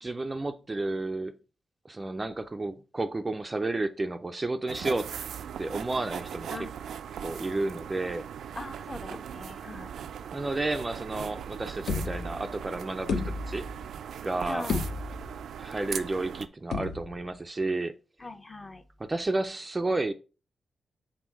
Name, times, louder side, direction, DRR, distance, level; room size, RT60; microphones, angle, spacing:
voice 1, 0.0-1.3 1.9-5.1 5.6-6.5 7.2-8.3 10.3-13.2 13.5-13.6 14.2-14.7 15.6-17.9 19.0-20.1, right 2 dB, 20° right, 0.4 m, -31 dB
sound 1, 4.7-16.5, right 8 dB, 90° right, 0.3 m, -39 dB
voice 2, 8.6-9.9 14.5-14.8 18.2-18.8, left 2 dB, 20° left, 0.6 m, -40 dB
sound 2, 11.3-11.4 11.9-12.6 13.1-13.9 14.3-14.4 14.7-15.5 16.7-17.4, left 4 dB, 75° left, 0.8 m, -32 dB
6.2 x 3.8 x 4.6 m
wide cardioid pair, 150°, 0 cm